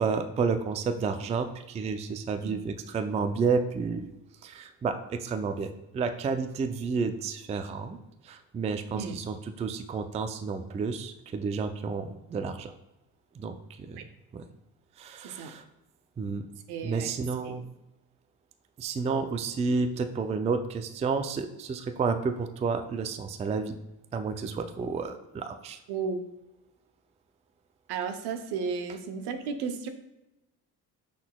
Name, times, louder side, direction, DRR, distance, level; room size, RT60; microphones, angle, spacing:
voice 1, 0.0-4.1 4.4-8.0 8.2-12.7 13.4-14.0 14.3-14.4 15.0-15.6 16.2-16.5 16.8-17.6 18.8-23.8 24.1-25.8, right 5 dB, 20° right, 8 dB, 0.3 m, -31 dB
voice 2, 16.7-17.1 17.4-17.6 25.9-26.2 27.9-29.9, right 5 dB, 70° right, 8 dB, 0.7 m, -33 dB
6.1 x 3.9 x 2.2 m, 0.95 s
supercardioid pair, 75°, 41 cm